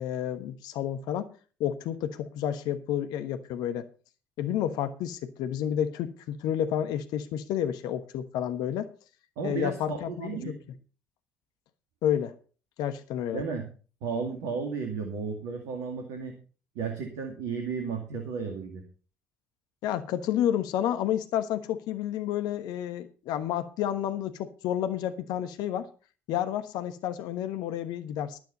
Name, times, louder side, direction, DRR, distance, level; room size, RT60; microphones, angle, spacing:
voice 1, 0.0-1.3 1.6-3.9 4.4-8.9 9.4-10.5 12.0-12.3 12.8-13.4 19.8-25.9 26.3-28.4, left 10 dB, 65° left, 1.2 m, -30 dB
voice 2, 9.4-10.5 13.3-13.7 14.0-16.3 16.8-18.8, right 5 dB, 70° right, 2.3 m, -33 dB
12.5 x 12.0 x 4.2 m
figure-of-eight pair, 45°, 8 cm